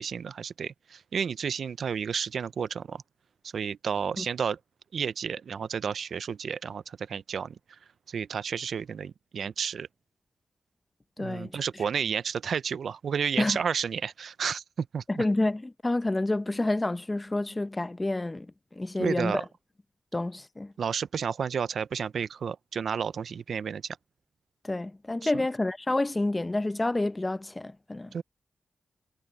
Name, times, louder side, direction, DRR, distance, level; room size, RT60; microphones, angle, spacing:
voice 1, 0.0-3.0 3.4-4.6 4.9-7.6 8.1-9.9 11.2-15.2 19.0-19.4 20.8-24.0 25.2-25.3 28.1-28.2, right 7 dB, 75° right, 0.5 m, -31 dB
voice 2, 11.2-11.6 13.4-13.6 15.1-19.4 20.1-20.7 24.6-28.1, left 2 dB, 25° left, 0.8 m, -29 dB
cardioid pair, 55°, 0 cm